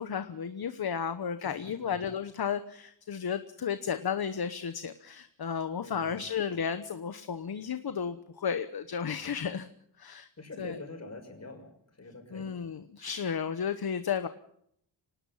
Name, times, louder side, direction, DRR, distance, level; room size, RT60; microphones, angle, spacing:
voice 1, 0.0-9.7 10.0-10.3 10.6-10.8 12.3-14.3, left 7 dB, 55° left, 10 dB, 1.1 m, -33 dB
voice 2, 1.4-2.0 5.8-6.3 10.4-11.7 11.9-12.5, left 2 dB, 35° left, 3 dB, 6.2 m, -45 dB
26.0 x 19.0 x 5.7 m, 0.70 s
wide cardioid pair, 150°, 44 cm